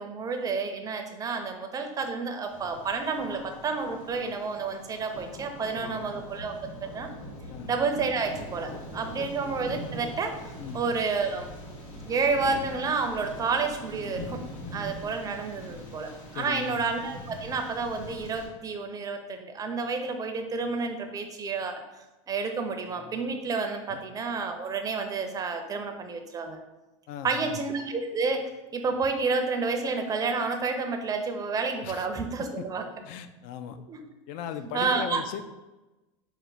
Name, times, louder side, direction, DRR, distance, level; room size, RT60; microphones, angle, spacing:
voice 1, 0.0-7.1 7.7-10.3 10.7-11.5 12.0-14.4 14.7-21.8 22.3-26.6 27.2-32.9 33.9-34.0 34.7-35.2, right 4 dB, 20° right, 5 dB, 0.5 m, -30 dB
Thunder, 2.5-18.5, equal, 90° left, 1.1 m, -42 dB
voice 2, 16.3-16.8 23.9-24.0 27.1-27.6 31.8-32.1 32.4-32.6 33.0-33.8 34.3-35.5, left 9 dB, 55° left, 10 dB, 0.4 m, -38 dB
4.4 x 2.1 x 3.9 m, 1.1 s
supercardioid pair, 115°, 17 cm